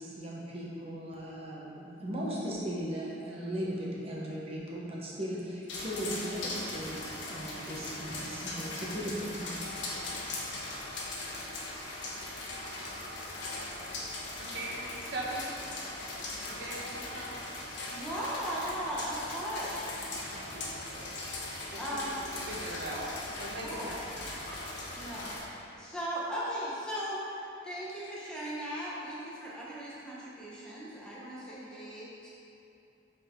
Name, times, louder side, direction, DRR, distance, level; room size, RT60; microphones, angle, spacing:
voice 1, 0.0-9.6, equal, 30° right, -5 dB, 1.1 m, -37 dB
sound 1, 5.7-25.4, left 2 dB, 65° left, 1.1 m, -39 dB
voice 2, 14.4-15.5 16.4-17.4 20.2-21.1 21.7-23.1 23.4-24.3, right 1 dB, 60° right, -4 dB, 0.9 m, -41 dB
voice 3, 17.9-20.1 21.8-22.1 23.6-23.9 24.9-32.3, equal, 5° left, -8 dB, 0.9 m, -38 dB
8.4 x 4.2 x 3.7 m, 2.7 s
head